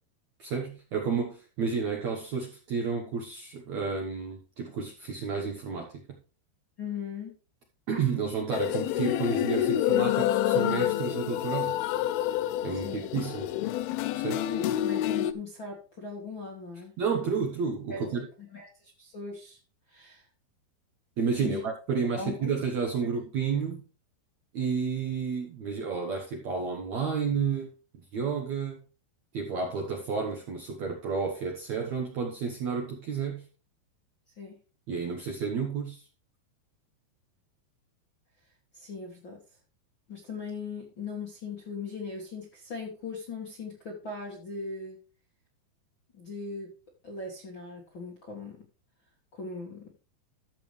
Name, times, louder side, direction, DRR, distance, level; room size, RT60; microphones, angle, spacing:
voice 1, 0.4-6.0 7.9-11.9 12.6-13.5 14.1-14.5 17.0-18.3 21.2-23.8 24.5-27.7 28.1-28.8 29.3-33.5 34.9-36.1, right 5 dB, 70° right, 2 dB, 1.7 m, -31 dB
voice 2, 6.8-7.3 12.8-13.1 14.5-16.9 17.9-18.2 18.5-19.6 19.9-20.2 21.4-21.6 22.2-22.3 23.0-23.1 34.4-34.6 38.7-39.4 40.1-45.0 46.1-46.7 47.0-48.6 49.3-49.9, left 4 dB, 50° left, -1 dB, 1.5 m, -39 dB
sound 1, 8.5-15.3, left 12 dB, 80° left, 2.3 m, -28 dB
13.5 x 7.0 x 3.2 m, 0.35 s
omnidirectional pair, 4.9 m